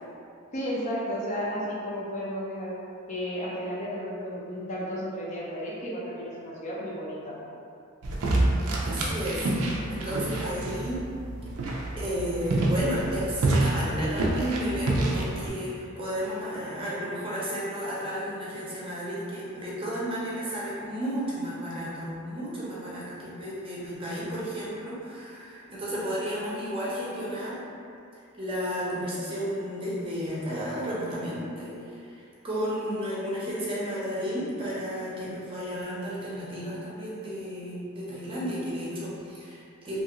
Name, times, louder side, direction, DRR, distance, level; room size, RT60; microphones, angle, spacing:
voice 1, 0.5-2.8 3.1-7.4, equal, 35° left, -5 dB, 0.4 m, -33 dB
sound 1, 8.0-15.5, right 2 dB, 85° right, 0.4 m, -28 dB
voice 2, 8.2-8.6 8.8-11.0 12.0-27.6 28.2-40.0, equal, 25° right, -7 dB, 0.6 m, -33 dB
2.8 x 2.4 x 2.8 m, 2.6 s
head